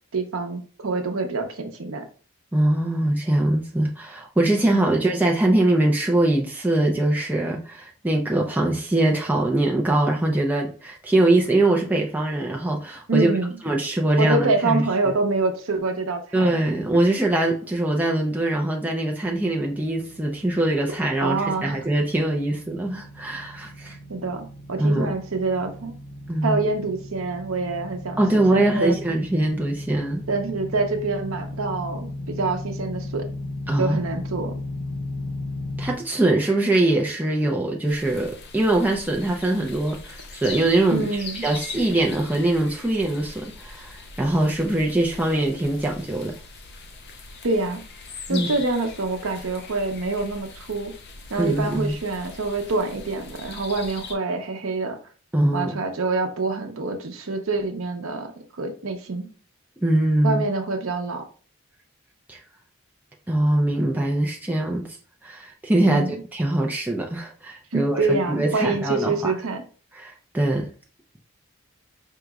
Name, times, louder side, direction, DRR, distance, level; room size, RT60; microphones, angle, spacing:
voice 1, 0.1-2.1 4.7-4.8 13.1-13.6 14.2-16.5 21.2-21.8 24.1-26.0 26.4-29.0 30.3-33.3 33.8-34.6 40.9-41.4 47.4-47.8 48.3-50.9 51.3-55.0 55.5-58.3 58.6-59.3 60.2-61.2 65.8-66.1 67.7-69.6, right 3 dB, 75° right, 0.7 m, -26 dB
voice 2, 2.5-13.3 13.6-14.8 16.3-24.0 24.8-25.1 26.3-26.6 28.2-30.2 33.7-34.0 35.8-41.0 41.4-46.3 48.3-48.5 51.4-51.9 55.3-55.8 59.8-60.4 62.3-62.4 63.3-64.8 65.2-66.0 66.3-69.3 70.0-70.7, right 1 dB, 10° right, 0.4 m, -22 dB
sound 1, 19.2-36.0, left 1 dB, 90° left, 0.7 m, -36 dB
sound 2, 37.9-54.1, left 4 dB, 50° left, 0.5 m, -41 dB
4.6 x 3.0 x 2.3 m
head